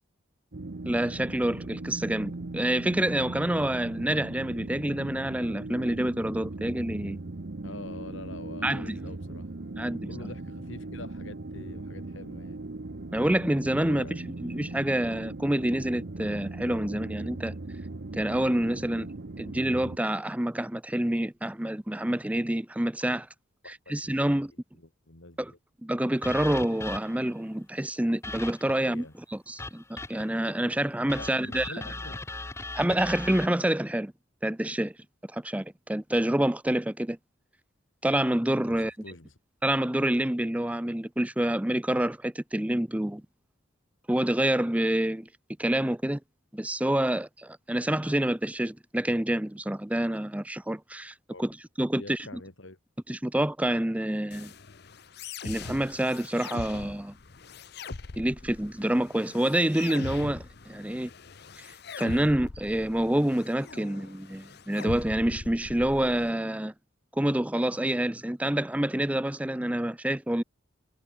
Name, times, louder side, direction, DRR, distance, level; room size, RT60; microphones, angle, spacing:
sound 1, 0.5-20.0, right 2 dB, 55° right, 0.8 m, -39 dB
voice 1, 0.8-7.2 8.6-9.0 9.8-10.0 13.1-17.5 18.1-19.1 19.4-23.3 23.7-24.5 25.4-25.5 25.8-29.1 29.3-31.7 32.7-34.1 34.4-34.9 35.3-37.2 38.0-38.9 39.6-43.2 44.1-45.3 45.6-46.2 46.5-52.4 53.1-54.5 55.4-57.1 58.2-61.1 62.0-66.7 67.1-70.4, right 1 dB, 5° right, 0.5 m, -27 dB
voice 2, 7.6-9.5 9.8-12.6 13.9-14.2 23.6-24.2 24.7-25.6 28.7-29.1 31.2-32.2 38.7-39.4 51.3-51.4 52.0-52.8, left 2 dB, 70° left, 2.7 m, -45 dB
sound 2, 26.2-27.3 28.2-28.9 29.6-30.4 31.1-33.5, left 2 dB, 15° left, 0.9 m, -38 dB
sound 3, 54.3-66.3, left 3 dB, 50° left, 0.9 m, -41 dB
head